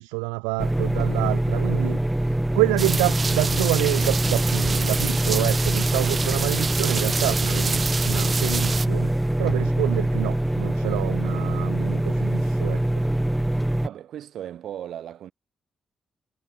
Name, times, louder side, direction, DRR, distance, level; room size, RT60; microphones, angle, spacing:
voice 1, 0.0-2.0 2.3-13.0, right 40 dB or more, 85° right, 0.5 m, -28 dB
sound 1, 0.6-13.9, right 1 dB, 10° right, 1.9 m, -24 dB
sound 2, 2.8-8.9, right 4 dB, 40° right, 0.7 m, -28 dB
voice 2, 13.8-15.3, right 10 dB, 70° right, 2.0 m, -36 dB
hypercardioid pair, 40°, 0 cm